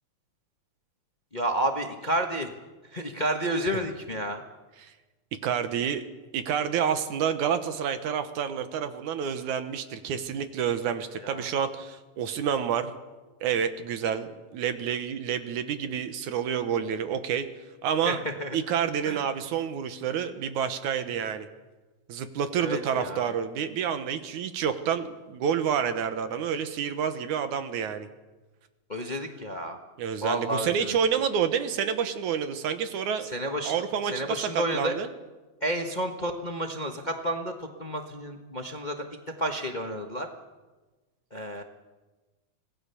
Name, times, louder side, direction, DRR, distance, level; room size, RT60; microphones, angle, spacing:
voice 1, 1.3-2.5 2.9-4.4 11.2-11.5 18.0-18.1 18.4-18.6 19.0-19.2 22.6-23.3 28.9-29.8 30.2-30.9 33.2-33.7 34.1-34.9 35.6-39.0 39.4-40.3 41.3-41.6, right 1 dB, 45° left, 4 dB, 0.5 m, -30 dB
voice 2, 5.4-6.0 6.3-12.9 13.4-17.5 17.8-18.2 18.5-21.5 22.1-28.1 30.0-33.3 33.6-35.1, right 8 dB, 80° right, 10 dB, 2.7 m, -29 dB
26.5 x 18.5 x 7.0 m, 1.2 s
omnidirectional pair, 3.4 m